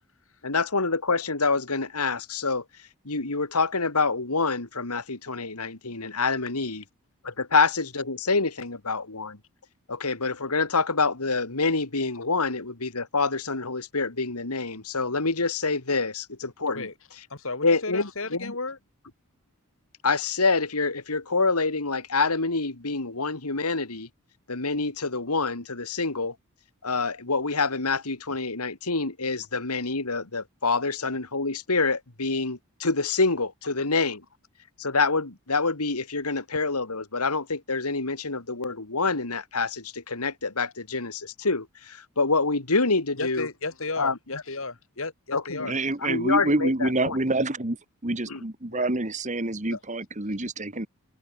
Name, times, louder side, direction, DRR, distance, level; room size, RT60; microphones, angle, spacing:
voice 1, 0.4-2.6 3.0-6.8 7.2-9.4 9.9-16.9 17.6-18.6 20.0-24.1 24.5-26.3 26.8-34.2 34.8-43.5 44.0-44.2 45.3-45.7 46.0-47.2 48.3-48.4 48.7-48.9, left 3 dB, 90° left, 2.6 m, -26 dB
voice 2, 17.3-18.8 43.2-45.7 49.7-49.8, left 3 dB, 60° left, 2.9 m, -34 dB
voice 3, 45.6-47.8 48.0-50.9, right 2 dB, 35° right, 2.0 m, -27 dB
head